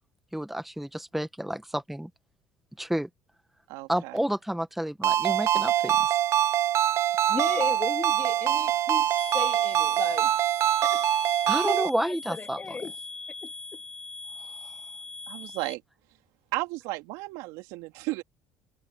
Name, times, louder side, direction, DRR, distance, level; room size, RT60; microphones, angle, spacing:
voice 1, 0.3-2.1 2.8-3.1 3.9-6.0 11.5-12.8, right 1 dB, 5° right, 1.5 m, -30 dB
voice 2, 3.7-4.2 15.3-15.8 16.5-18.2, right 21 dB, 75° right, 2.7 m, -34 dB
Ringtone, 5.0-11.9, right 11 dB, 55° right, 0.5 m, -24 dB
voice 3, 7.3-10.4 10.8-11.1 11.6-12.9 13.4-13.5, left 4 dB, 30° left, 2.3 m, -35 dB
sound 1, 9.2-15.7, left 3 dB, 15° left, 4.0 m, -41 dB
hypercardioid pair, 70°, 6 cm